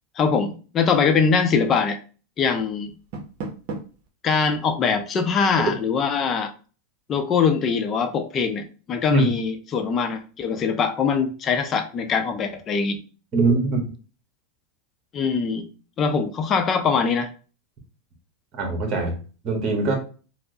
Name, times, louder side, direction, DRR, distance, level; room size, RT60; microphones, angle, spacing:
voice 1, 0.2-2.0 2.4-2.9 4.2-6.5 7.1-13.0 15.1-15.6 16.0-17.3, left 5 dB, 30° left, 8 dB, 0.5 m, -22 dB
Door, 2.8-4.1, right 3 dB, 60° right, 0.8 m, -35 dB
voice 2, 13.3-13.8 18.5-19.2 19.4-20.0, right 3 dB, 40° right, 2 dB, 1.2 m, -22 dB
4.4 x 2.1 x 2.7 m, 0.37 s
supercardioid pair, 120°, 0 cm